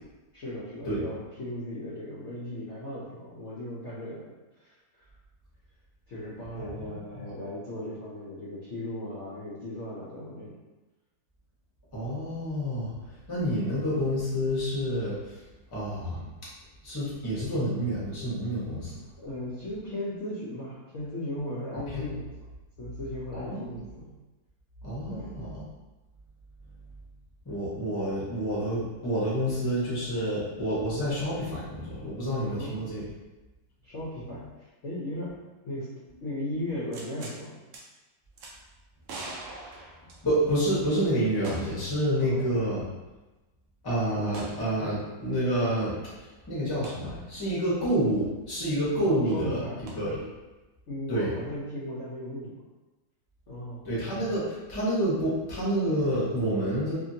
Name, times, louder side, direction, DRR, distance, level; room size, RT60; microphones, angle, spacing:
voice 1, 0.3-5.1 6.1-10.5 19.2-22.3 22.8-24.1 25.1-25.3 32.3-32.7 33.8-35.3 35.6-35.9 36.2-37.5 42.2-42.5 44.1-44.2 49.0-49.8 50.9-52.6 53.5-53.8, left 1 dB, 60° left, -9 dB, 0.8 m, -37 dB
voice 2, 6.8-7.3 11.9-12.9 13.3-15.4 15.7-16.3 16.8-19.0 21.9-22.1 23.3-23.7 24.8-25.6 27.4-33.0 40.2-42.8 43.8-49.6 49.9-50.2 51.1-51.3 53.8-56.9, equal, 20° left, -9 dB, 0.7 m, -28 dB
sound 1, 36.9-37.4 37.7-37.8 38.4-38.5 39.1-40.6 41.4-41.9 42.2-42.3 44.3-44.6 46.8-47.0 49.9-50.0, right 2 dB, 75° right, 0.7 m, -42 dB
2.8 x 2.7 x 2.6 m, 1.1 s
omnidirectional pair, 1.9 m